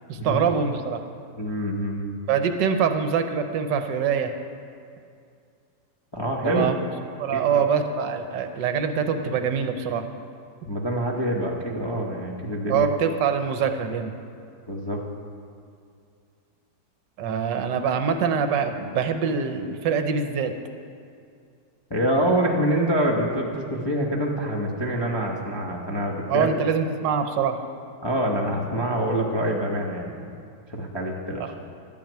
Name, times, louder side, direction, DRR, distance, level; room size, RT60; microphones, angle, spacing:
voice 1, 0.1-1.0 2.3-4.3 6.4-6.7 7.2-10.1 12.7-14.1 17.2-20.5 26.3-27.6 31.4-31.5, right 6 dB, 75° right, 7 dB, 1.3 m, -24 dB
voice 2, 1.4-2.2 6.1-6.7 7.3-7.6 10.7-12.9 14.7-15.0 21.9-26.5 28.0-30.3 30.7-31.4, equal, 20° left, -2 dB, 0.6 m, -26 dB
12.5 x 6.2 x 8.7 m, 2.4 s
omnidirectional pair, 2.0 m